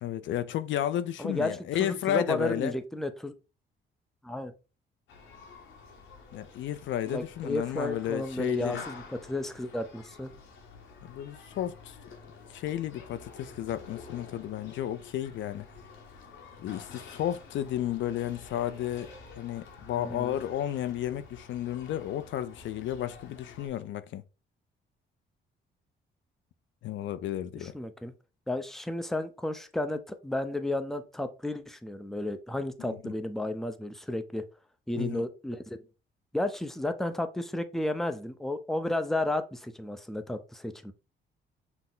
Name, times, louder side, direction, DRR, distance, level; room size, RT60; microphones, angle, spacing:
voice 1, 0.0-2.8 6.3-8.8 11.0-12.0 12.5-15.6 16.6-24.2 26.8-27.7 32.8-33.1 35.0-35.2, left 11 dB, 70° left, 0.4 m, -33 dB
voice 2, 1.2-3.3 4.2-4.5 7.1-10.3 19.9-20.4 27.6-28.1 28.5-34.4 34.9-35.8 36.3-40.9, left 1 dB, ahead, 0.5 m, -33 dB
Human group actions, 5.1-23.7, left 4 dB, 90° left, 1.1 m, -49 dB
5.8 x 2.0 x 3.8 m
cardioid pair, 90°, 20 cm